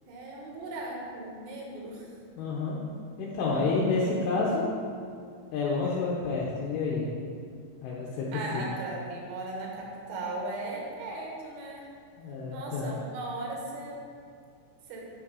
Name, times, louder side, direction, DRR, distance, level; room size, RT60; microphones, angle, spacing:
voice 1, 0.1-2.1 8.3-11.9 12.5-14.0 14.9-15.1, right 2 dB, 75° right, -1 dB, 3.7 m, -37 dB
voice 2, 2.4-2.8 3.2-4.7 5.5-7.1 7.8-8.6 12.2-12.9, left 3 dB, 80° left, -5 dB, 3.3 m, -29 dB
9.6 x 6.3 x 4.7 m, 2.3 s
omnidirectional pair, 6.0 m